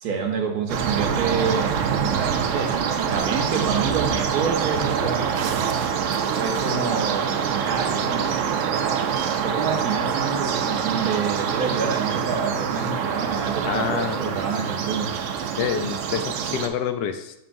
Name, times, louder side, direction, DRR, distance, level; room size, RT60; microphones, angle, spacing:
voice 1, 0.0-5.3 6.3-8.4 9.4-15.1, right 5 dB, 65° right, 2 dB, 1.3 m, -28 dB
sound 1, 0.7-16.7, right 7 dB, 85° right, 0.6 m, -25 dB
voice 2, 13.7-14.4 15.6-17.3, left 8 dB, 80° left, 8 dB, 1.2 m, -27 dB
7.0 x 5.5 x 2.6 m, 0.84 s
omnidirectional pair, 1.9 m